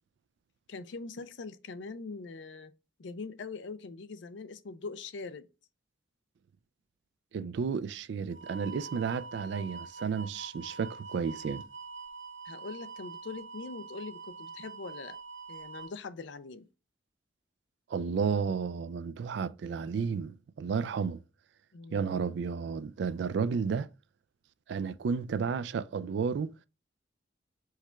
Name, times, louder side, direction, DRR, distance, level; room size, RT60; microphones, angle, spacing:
voice 1, 0.7-2.7 3.0-5.5 12.4-15.2 15.5-16.7 21.7-22.3, left 4 dB, 75° left, 0.5 m, -42 dB
voice 2, 7.3-11.6 17.9-21.2 21.9-23.9 24.7-26.5, right 6 dB, 65° right, 0.3 m, -32 dB
sound 1, 8.3-15.9, right 5 dB, 85° right, 1.2 m, -45 dB
4.7 x 2.3 x 4.3 m
head